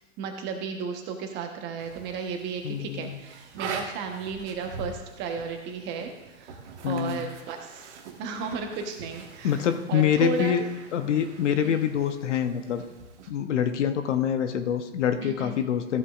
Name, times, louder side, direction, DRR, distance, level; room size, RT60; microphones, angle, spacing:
voice 1, 0.2-6.1 6.4-10.6 11.6-11.7 15.2-15.5, right 5 dB, 30° right, 4 dB, 1.1 m, -34 dB
sound 1, 1.8-13.3, right 4 dB, 60° right, 1.5 m, -44 dB
voice 2, 2.6-3.2 6.8-7.2 9.4-10.6 10.9-12.8 13.3-16.0, left 8 dB, 65° left, 8 dB, 1.0 m, -25 dB
14.5 x 8.1 x 2.5 m, 1.1 s
hypercardioid pair, 130°, 38 cm